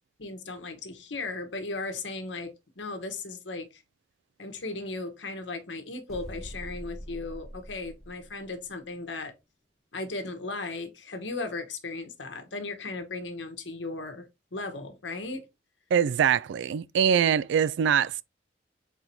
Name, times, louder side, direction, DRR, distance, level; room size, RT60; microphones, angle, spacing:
voice 1, 0.2-3.8 4.4-9.3 9.9-15.5, left 3 dB, 80° left, 1.0 m, -36 dB
sound 1, 6.1-8.8, equal, ahead, 1.2 m, -43 dB
voice 2, 15.9-18.2, right 8 dB, 80° right, 0.3 m, -23 dB
4.5 x 3.9 x 2.6 m
head